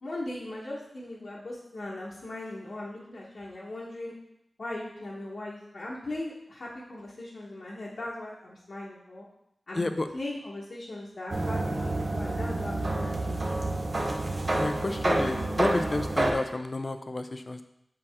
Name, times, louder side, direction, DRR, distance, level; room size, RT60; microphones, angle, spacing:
voice 1, 0.0-4.1 4.6-9.2 9.7-13.4, left 1 dB, 70° left, -7 dB, 1.2 m, -39 dB
voice 2, 9.7-10.1 14.6-17.6, left 2 dB, 40° left, 9 dB, 0.5 m, -30 dB
sound 1, 11.3-16.3, right 2 dB, 50° right, 0.8 m, -28 dB
6.2 x 4.8 x 3.6 m, 0.78 s
wide cardioid pair, 75°, 0 cm